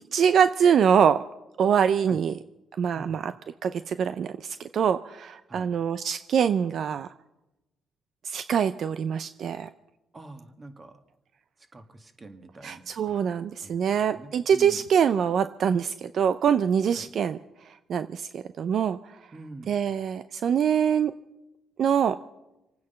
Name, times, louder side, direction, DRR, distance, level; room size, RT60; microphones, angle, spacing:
voice 1, 0.1-1.2 1.6-2.3 2.8-3.3 3.6-7.1 8.2-9.7 12.6-19.2 19.7-21.1 21.8-22.2, right 7 dB, 60° right, 12 dB, 0.5 m, -24 dB
voice 2, 10.1-11.0 11.7-12.9 13.6-13.7 14.1-14.8 16.9-17.1 19.3-19.7, right 2 dB, 30° right, 6 dB, 2.1 m, -45 dB
26.0 x 9.5 x 5.7 m, 0.97 s
cardioid pair, 90°, 0 cm